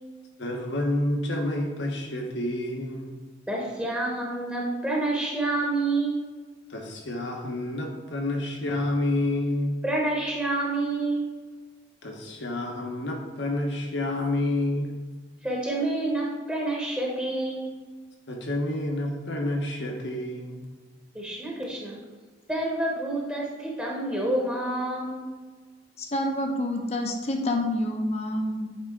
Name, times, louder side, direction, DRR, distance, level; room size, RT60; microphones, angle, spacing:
voice 1, 0.4-3.1 6.7-9.8 12.0-15.0 18.3-20.6, left 1 dB, 65° left, 1 dB, 1.1 m, -29 dB
voice 2, 3.5-6.2 9.8-11.2 15.4-17.7 21.1-22.0 22.5-25.3, right 2 dB, 5° right, -3 dB, 1.0 m, -28 dB
voice 3, 26.0-28.7, left 1 dB, 35° left, 3 dB, 0.7 m, -28 dB
8.5 x 3.6 x 3.7 m, 1.4 s
head